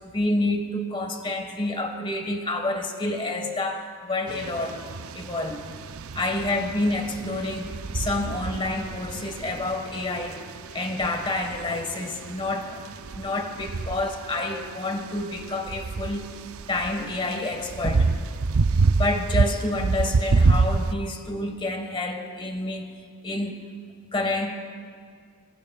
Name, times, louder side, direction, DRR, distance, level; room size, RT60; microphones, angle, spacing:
voice 1, 0.1-4.8 5.1-5.6 6.1-10.4 10.7-12.8 13.1-16.2 16.7-18.1 19.0-22.8 23.2-23.6 24.1-24.5, left 2 dB, 25° left, 5 dB, 1.5 m, -28 dB
sound 1, 4.3-20.9, right 4 dB, 75° right, 0.5 m, -28 dB
27.5 x 21.5 x 2.4 m, 2.1 s
head